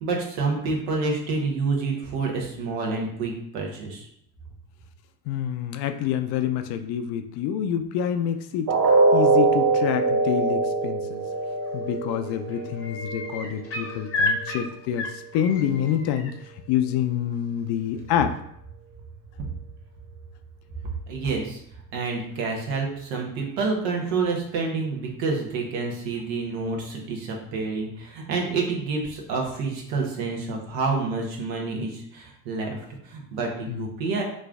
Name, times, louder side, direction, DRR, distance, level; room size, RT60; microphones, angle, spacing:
voice 1, 0.0-4.1 21.1-21.6 21.9-34.2, right 4 dB, 70° right, 0 dB, 1.0 m, -28 dB
voice 2, 5.3-8.7 9.1-11.2 11.7-16.3 16.7-18.4 33.7-33.9, left 9 dB, 60° left, 8 dB, 0.5 m, -27 dB
sound 1, 8.7-14.7 15.0-15.2 15.7-15.8, right 3 dB, 40° right, 0.6 m, -23 dB
sound 2, 11.6-12.0 12.3-16.3 18.0-18.1, left 2 dB, 30° left, 0.8 m, -31 dB
3.1 x 2.5 x 3.6 m, 0.72 s
hypercardioid pair, 60°, 44 cm